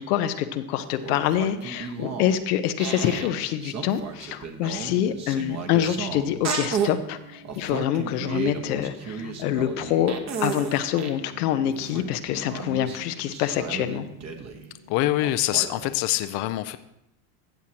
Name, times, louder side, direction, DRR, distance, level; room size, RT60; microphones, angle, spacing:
voice 1, 0.0-10.1 10.4-14.1, left 11 dB, 85° left, 9 dB, 0.8 m, -26 dB
sound 1, 0.8-2.4 2.8-3.3 3.6-6.9 7.4-11.2 11.6-14.7 15.2-15.9, right 6 dB, 35° right, 1.2 m, -33 dB
moody sirens, 5.3-15.3, right 1 dB, 55° right, 2.7 m, -48 dB
voice 2, 14.9-16.8, left 15 dB, 55° left, 12 dB, 0.6 m, -24 dB
14.5 x 7.3 x 2.9 m, 0.85 s
supercardioid pair, 95°, 45 cm